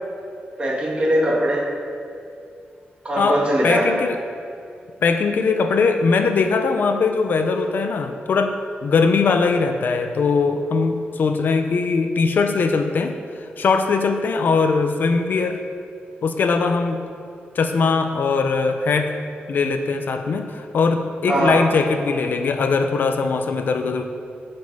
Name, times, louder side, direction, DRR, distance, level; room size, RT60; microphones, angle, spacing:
voice 1, 0.6-1.7 3.0-4.0 21.3-21.6, right 1 dB, 30° right, -3 dB, 1.8 m, -20 dB
voice 2, 3.2-4.2 5.0-8.6 8.8-15.6 16.2-17.0 17.5-19.1 19.5-24.1, left 4 dB, 60° left, 7 dB, 0.5 m, -20 dB
12.0 x 5.3 x 5.3 m, 2.5 s
wide cardioid pair, 170°, 4 cm